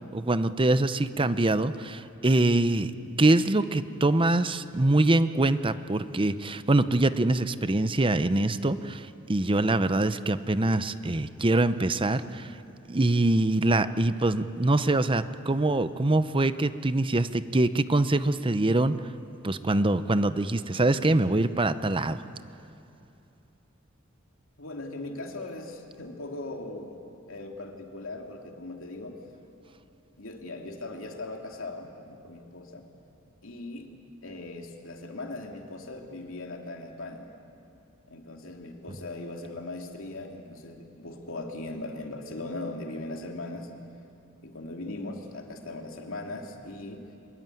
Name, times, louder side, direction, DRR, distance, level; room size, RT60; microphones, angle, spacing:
voice 1, 0.1-2.9 3.2-12.5 12.9-19.0 19.4-22.2, right 2 dB, 25° right, 12 dB, 0.7 m, -24 dB
voice 2, 24.6-27.0 27.3-29.2 30.2-32.9 33.4-33.9 34.2-37.3 38.1-43.7 44.4-47.0, left 2 dB, 75° left, 2 dB, 2.8 m, -39 dB
24.5 x 22.0 x 9.2 m, 2.7 s
head